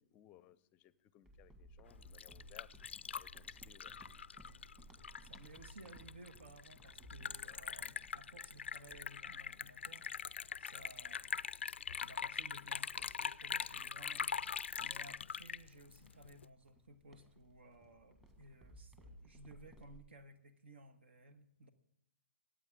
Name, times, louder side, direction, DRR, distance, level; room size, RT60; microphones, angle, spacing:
voice 1, 0.0-2.7 3.1-4.0, left 14 dB, 25° left, 18 dB, 0.6 m, -63 dB
sound 1, 1.2-11.1 11.6-11.8 12.3-20.0, right 2 dB, 10° right, 1.8 m, -61 dB
Liquid, 1.9-16.5, left 7 dB, 70° left, 0.4 m, -43 dB
voice 2, 5.2-11.5 12.0-21.7, right 1 dB, 65° right, 10 dB, 1.5 m, -58 dB
23.5 x 8.8 x 3.7 m, 0.75 s
figure-of-eight pair, 125°, 7 cm